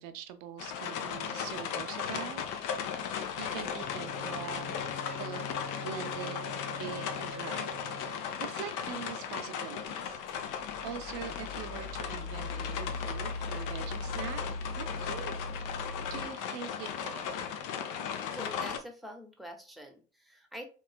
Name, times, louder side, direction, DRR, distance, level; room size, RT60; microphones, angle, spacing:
voice 1, 0.0-2.4 3.4-4.8 5.1-5.4 5.8-10.2 10.8-14.4 14.8-15.3 16.1-17.3, right 9 dB, 55° right, 10 dB, 0.6 m, -43 dB
sound 1, 0.6-18.8, left 7 dB, 50° left, 0.6 m, -37 dB
Bowed string instrument, 3.7-8.5, left 2 dB, 25° left, 1.3 m, -44 dB
sound 2, 10.1-16.2, left 2 dB, 70° left, 1.3 m, -40 dB
voice 2, 18.3-20.6, equal, ahead, 2 dB, 0.7 m, -45 dB
3.0 x 3.0 x 2.2 m, 0.36 s
figure-of-eight pair, 60°, 41 cm